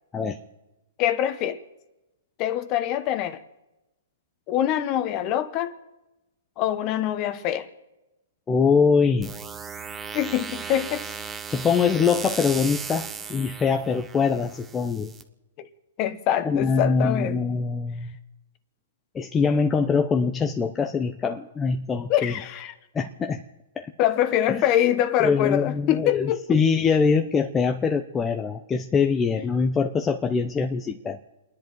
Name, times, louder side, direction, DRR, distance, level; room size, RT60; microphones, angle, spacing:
voice 1, 1.0-1.6 2.4-3.4 4.5-5.7 6.6-7.7 10.1-11.1 15.6-15.7 16.0-17.5 22.1-22.7 24.0-26.6, left 11 dB, 30° left, 1.2 m, -24 dB
voice 2, 8.5-9.3 11.5-15.1 16.4-18.2 19.1-22.3 22.9-23.4 23.8-23.9 24.5-24.6 25.2-31.2, left 5 dB, 15° left, 0.7 m, -23 dB
sound 1, 9.2-15.2, right 6 dB, 15° right, 1.0 m, -36 dB
30.0 x 10.5 x 4.6 m
hypercardioid pair, 150°, 0 cm